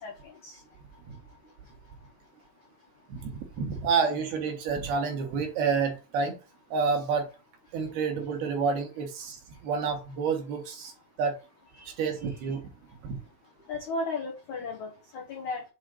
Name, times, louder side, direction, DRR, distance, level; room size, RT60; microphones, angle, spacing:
voice 1, 0.0-0.6 11.8-11.9 13.7-15.6, left 3 dB, 90° left, 0 dB, 1.6 m, -35 dB
voice 2, 3.6-6.4 6.7-7.3 7.7-10.9 11.2-11.4 12.0-12.7 13.0-13.2, right 5 dB, 65° right, 2 dB, 2.9 m, -29 dB
7.7 x 3.4 x 4.8 m, 0.30 s
omnidirectional pair, 5.5 m